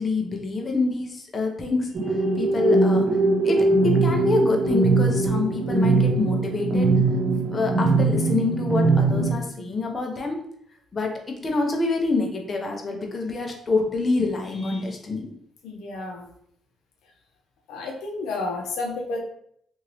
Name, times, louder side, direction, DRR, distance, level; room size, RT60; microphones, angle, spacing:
voice 1, 0.0-3.1 3.4-6.9 7.5-10.4 10.9-15.3, left 3 dB, 35° left, 1 dB, 0.7 m, -26 dB
sound 1, 1.9-9.3, right 3 dB, 55° right, 0.9 m, -21 dB
voice 2, 15.6-16.3 17.7-19.2, left 3 dB, 90° left, 1 dB, 0.5 m, -31 dB
2.9 x 2.6 x 3.0 m, 0.69 s
cardioid pair, 90°, 0 cm